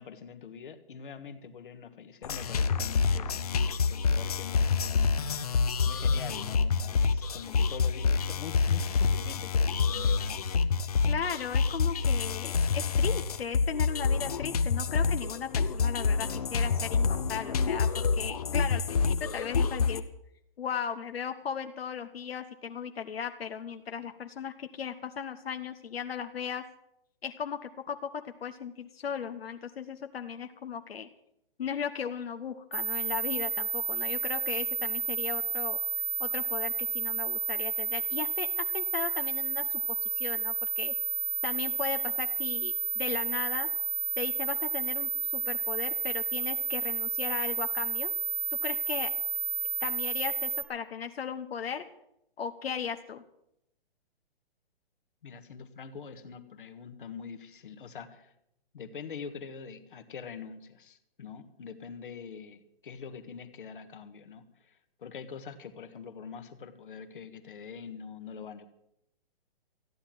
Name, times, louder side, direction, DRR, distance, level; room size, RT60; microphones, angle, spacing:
voice 1, 0.0-10.5 55.2-58.3 58.7-68.7, left 6 dB, 60° left, 8 dB, 1.6 m, -44 dB
sound 1, 2.2-20.0, left 5 dB, 40° left, 0.8 m, -27 dB
voice 2, 11.0-19.0 19.3-20.0 20.6-26.6 27.2-31.1 31.6-35.8 36.2-39.8 40.1-40.9 41.4-43.7 44.2-48.1 48.6-49.1 49.8-51.8 52.4-53.2, left 7 dB, 85° left, 7 dB, 1.3 m, -36 dB
sound 2, 32.7-50.6, right 5 dB, 75° right, 2.3 m, -31 dB
14.5 x 10.5 x 7.6 m, 0.78 s
hypercardioid pair, 180°, 30 cm